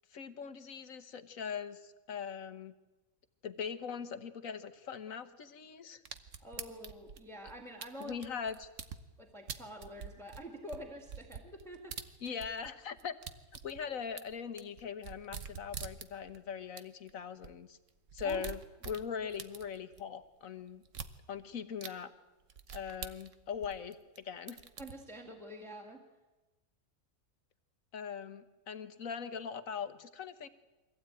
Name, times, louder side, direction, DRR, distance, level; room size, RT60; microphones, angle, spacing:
voice 1, 0.1-2.7 3.4-6.0 8.0-8.7 12.2-13.2 13.6-17.8 18.1-18.6 18.8-20.8 21.3-22.1 22.7-24.6 27.9-30.5, left 7 dB, 65° left, 11 dB, 1.6 m, -41 dB
sound 1, 6.1-9.0 9.5-12.7 13.0-16.4 16.8-16.9 17.1-17.2 17.4-17.5 17.9-20.0 20.9-21.1 21.8-21.9 22.5-24.2 24.5-24.9, right 7 dB, 60° right, 1.4 m, -45 dB
voice 2, 6.4-8.2 9.2-11.9 12.3-12.4 18.2-18.4 24.8-26.0, equal, ahead, 1 dB, 2.1 m, -47 dB
23.5 x 16.5 x 9.1 m, 1.1 s
omnidirectional pair, 1.5 m